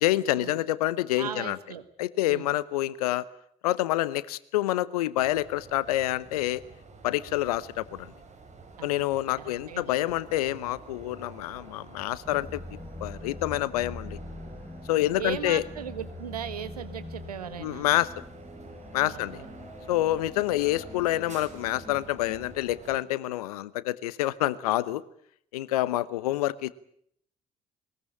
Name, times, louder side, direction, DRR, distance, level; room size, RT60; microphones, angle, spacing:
voice 1, 0.0-1.6 2.0-3.3 3.6-6.6 7.0-8.1 8.8-12.6 13.0-14.2 14.9-15.6 17.6-18.1 18.9-19.4 19.9-25.0 25.5-26.7, left 15 dB, 80° left, 19 dB, 1.0 m, -27 dB
voice 2, 1.2-1.8 2.2-2.5 8.8-9.1 9.4-10.1 15.2-17.9 19.0-19.5, right 9 dB, 85° right, 11 dB, 1.5 m, -38 dB
sound 1, 5.1-23.0, right 3 dB, 35° right, 6.5 m, -49 dB
sound 2, 12.2-22.6, left 2 dB, 10° left, 5.9 m, -44 dB
22.0 x 21.0 x 8.7 m, 0.66 s
figure-of-eight pair, 50°, 19 cm